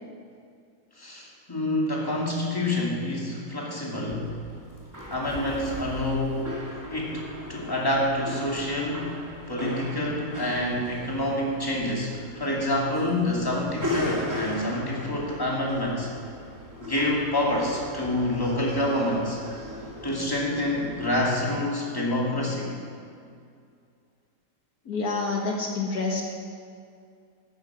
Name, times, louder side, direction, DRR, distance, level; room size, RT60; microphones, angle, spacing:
voice 1, 1.0-4.3 5.1-6.5 6.9-9.1 9.5-16.1 16.8-19.4 20.0-22.7, left 1 dB, 15° left, -4 dB, 2.4 m, -27 dB
sound 1, 4.1-21.2, left 1 dB, 10° right, 2.4 m, -38 dB
voice 2, 24.9-26.3, left 3 dB, 65° left, -1 dB, 1.8 m, -28 dB
13.5 x 12.0 x 4.9 m, 2.3 s
omnidirectional pair, 1.7 m